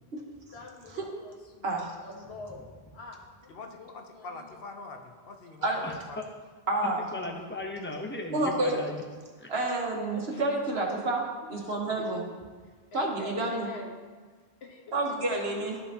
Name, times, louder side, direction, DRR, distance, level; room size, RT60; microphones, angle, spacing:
voice 1, 0.5-2.7 2.9-4.6 8.3-8.5 10.1-10.4 12.0-12.2 12.9-13.9 14.6-15.5, left 3 dB, 85° left, 0 dB, 1.4 m, -46 dB
voice 2, 1.6-1.9 5.6-5.8 6.7-7.0 8.3-8.8 9.5-12.2 12.9-13.7 14.9-15.8, right 2 dB, 80° right, 0 dB, 1.4 m, -29 dB
voice 3, 3.5-6.2, left 3 dB, 65° left, 4 dB, 1.0 m, -44 dB
voice 4, 5.8-6.2 6.8-9.0 9.4-9.5, left 2 dB, 15° left, 1 dB, 0.7 m, -37 dB
12.5 x 5.5 x 2.8 m, 1.4 s
omnidirectional pair, 1.1 m